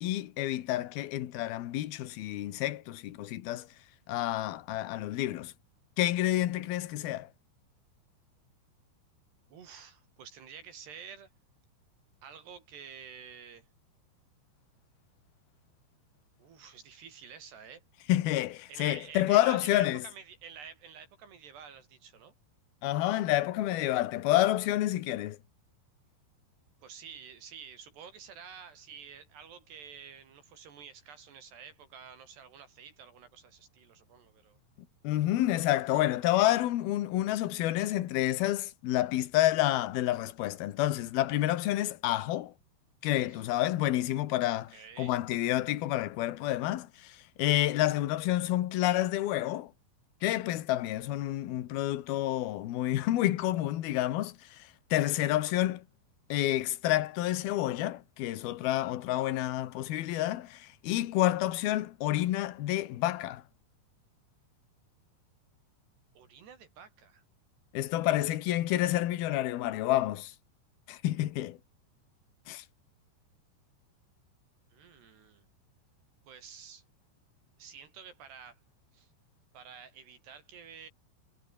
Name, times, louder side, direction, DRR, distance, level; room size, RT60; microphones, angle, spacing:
voice 1, 0.0-3.7 4.1-5.5 6.0-7.3 18.1-20.0 22.8-25.4 35.0-42.5 43.0-49.7 50.2-54.6 54.9-55.8 56.3-63.4 67.7-70.3 70.9-71.6 72.5-72.6, left 14 dB, 65° left, 2.8 m, -29 dB
voice 2, 9.5-11.3 12.2-13.7 16.4-17.8 18.7-22.3 26.8-34.6 43.3-43.4 44.5-45.1 66.1-67.2 74.7-75.5 76.3-76.8 77.6-78.6 78.9-79.1 79.5-80.9, right 7 dB, 60° right, 5.0 m, -49 dB
omnidirectional pair, 5.5 m